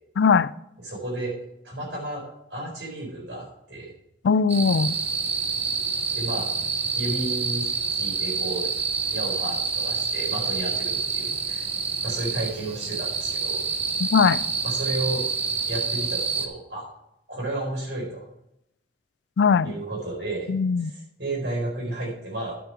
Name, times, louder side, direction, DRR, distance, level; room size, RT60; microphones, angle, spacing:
voice 1, 0.2-0.5 4.2-5.0 14.0-14.4 19.4-19.7 20.5-20.9, left 5 dB, 75° left, 17 dB, 0.4 m, -20 dB
voice 2, 0.8-1.4 1.6-2.2 2.5-3.9 6.1-6.5 6.9-8.7 9.1-11.7 12.0-13.7 14.6-15.2 15.7-16.8 17.3-18.2 19.6-20.5 20.8-22.5, right 2 dB, 75° right, -1 dB, 4.2 m, -32 dB
sound 1, 4.5-16.5, right 5 dB, 35° right, 0.9 m, -27 dB
10.5 x 7.0 x 4.5 m, 0.82 s
head